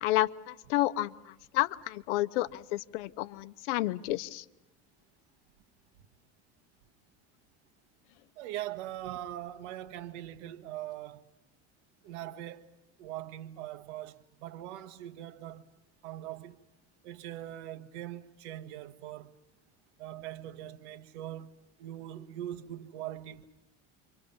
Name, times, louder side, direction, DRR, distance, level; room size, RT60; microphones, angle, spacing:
voice 1, 0.0-1.1 1.5-4.4, left 16 dB, 85° left, 0.9 m, -30 dB
voice 2, 8.4-11.3 12.0-12.7 13.0-15.7 16.0-16.6 17.0-19.3 20.0-23.5, right 13 dB, 90° right, 1.6 m, -41 dB
28.5 x 24.5 x 5.6 m
supercardioid pair, 120°, 34 cm